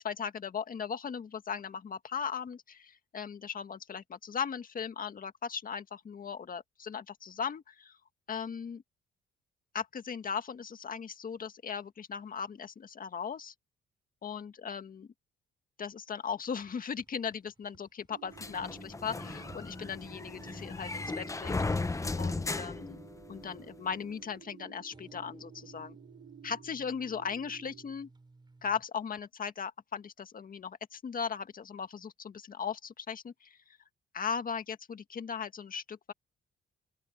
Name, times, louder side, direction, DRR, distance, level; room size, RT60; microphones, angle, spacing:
voice 1, 0.0-8.0 8.3-8.8 9.7-13.5 14.2-15.1 15.8-21.6 22.2-23.0 23.3-26.0 26.4-28.1 28.6-33.8 34.1-36.1, left 6 dB, 45° left, 1.8 m, -38 dB
sound 1, 17.0-20.1 20.3-20.8 21.1-21.2 21.5-22.3 22.6-23.3 24.9-28.8, right 3 dB, 20° right, 4.3 m, -57 dB
sound 2, 18.1-28.0, right 10 dB, 75° right, 2.2 m, -54 dB
sound 3, 18.4-23.6, left 3 dB, 15° left, 0.8 m, -36 dB
open air
cardioid pair, 90°, 20 cm